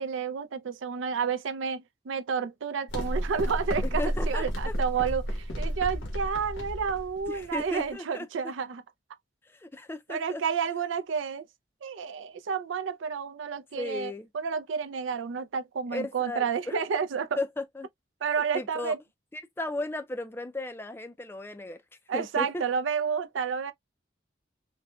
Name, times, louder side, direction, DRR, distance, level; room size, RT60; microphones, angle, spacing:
voice 1, 0.0-8.8 10.1-11.4 11.8-17.4 18.2-19.0 22.1-23.7, right 6 dB, 85° right, 0.4 m, -30 dB
sound 1, 2.9-8.0, equal, 85° left, 1.2 m, -32 dB
voice 2, 3.9-4.7 7.3-8.3 9.4-10.4 13.7-14.3 15.9-16.8 17.1-17.9 18.4-18.9 19.3-21.8 22.1-22.6, left 2 dB, 10° left, 0.3 m, -35 dB
4.1 x 2.1 x 2.2 m
head